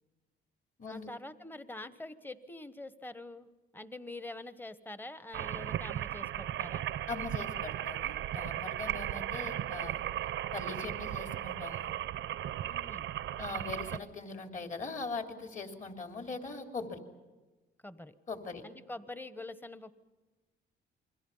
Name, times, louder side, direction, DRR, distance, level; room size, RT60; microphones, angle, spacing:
voice 1, 0.9-3.5 3.7-6.8 12.6-13.1 17.8-18.1 18.6-19.9, left 2 dB, 10° left, 13 dB, 1.2 m, -45 dB
sound 1, 5.3-14.0, right 11 dB, 75° right, 0.8 m, -36 dB
voice 2, 7.1-10.0 10.5-11.9 13.4-17.0 18.3-18.7, left 4 dB, 40° left, 5 dB, 3.2 m, -41 dB
29.0 x 22.5 x 5.6 m, 1.2 s
cardioid pair, 90°, 20 cm